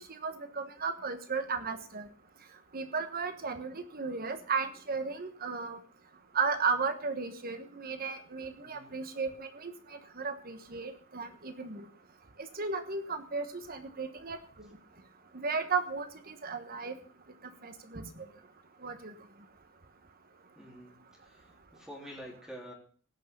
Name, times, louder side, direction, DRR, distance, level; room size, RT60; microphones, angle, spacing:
voice 1, 0.0-2.1 2.7-5.8 6.3-11.9 12.5-14.4 15.3-17.0 17.6-18.0 18.8-19.1, right 4 dB, 45° right, 8 dB, 1.3 m, -35 dB
voice 2, 8.6-8.9 20.6-20.9 21.2-22.7, equal, ahead, -1 dB, 3.5 m, -48 dB
17.0 x 6.4 x 6.8 m, 0.42 s
head